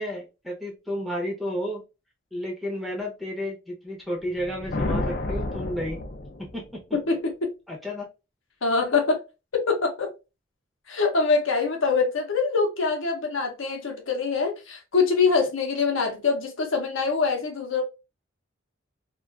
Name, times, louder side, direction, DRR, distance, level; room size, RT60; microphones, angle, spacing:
voice 1, 0.0-1.8 2.3-6.0 6.4-6.8 7.7-8.1, equal, ahead, 0.6 m, -32 dB
sound 1, 4.3-6.8, left 2 dB, 45° left, 0.4 m, -30 dB
voice 2, 6.9-7.5 8.6-9.2 9.5-10.1 10.9-17.8, left 4 dB, 75° left, 0.7 m, -24 dB
2.4 x 2.3 x 2.4 m
head